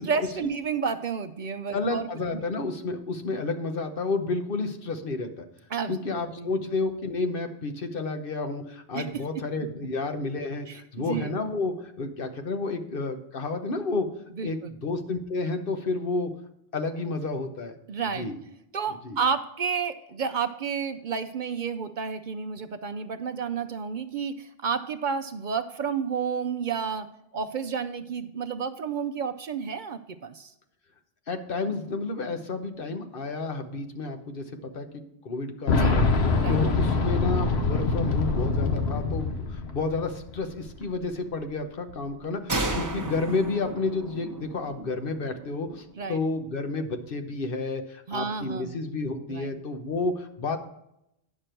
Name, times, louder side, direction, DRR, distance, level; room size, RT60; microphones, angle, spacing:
voice 1, 0.0-2.1 5.7-6.5 8.9-9.0 10.7-11.3 14.4-14.8 17.9-18.3 18.7-27.1 27.3-30.5 35.7-36.0 36.4-36.5 46.0-46.2 48.1-48.7 49.3-49.5, right 6 dB, 55° right, 10 dB, 0.6 m, -31 dB
voice 2, 1.7-5.4 5.9-14.1 14.4-16.3 16.7-17.7 18.1-18.4 19.0-19.2 31.3-36.1 36.5-50.6, left 3 dB, 60° left, 6 dB, 1.1 m, -31 dB
Boom, 35.7-40.4 40.7-40.8 41.9-42.0, left 4 dB, 90° left, 1.2 m, -24 dB
sound 1, 42.5-46.0, right 2 dB, 20° right, 0.8 m, -33 dB
9.8 x 6.7 x 4.4 m, 0.80 s
omnidirectional pair, 1.0 m